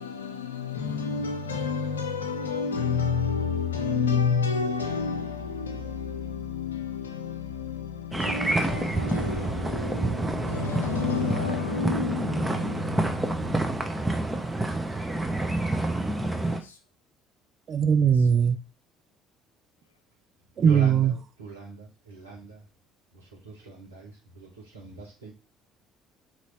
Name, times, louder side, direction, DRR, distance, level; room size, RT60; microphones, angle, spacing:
voice 1, 0.0-14.3 16.4-16.7, left 5 dB, 85° left, 0.6 m, -30 dB
sound 1, 8.1-16.6, right 2 dB, 10° right, 0.9 m, -28 dB
voice 2, 17.7-18.6 20.6-21.1, right 7 dB, 45° right, 0.4 m, -20 dB
voice 3, 20.6-22.7 23.1-25.3, right 4 dB, 90° right, 1.3 m, -40 dB
4.1 x 3.0 x 4.1 m
figure-of-eight pair, 55°, 0 cm